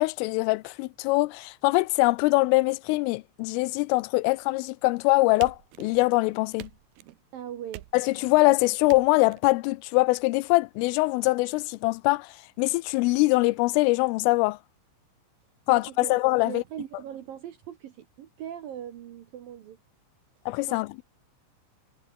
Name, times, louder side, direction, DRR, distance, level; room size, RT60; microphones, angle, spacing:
voice 1, 0.0-6.7 7.9-14.6 15.7-16.6 20.5-21.0, left 22 dB, 85° left, 3.2 m, -23 dB
sound 1, 5.4-6.2 6.6-7.2 7.7-8.4 8.9-9.4, right 16 dB, 80° right, 2.2 m, -44 dB
voice 2, 7.3-7.9 15.7-16.2 16.5-19.8 20.7-20.8, right 10 dB, 65° right, 2.3 m, -40 dB
omnidirectional pair, 5.7 m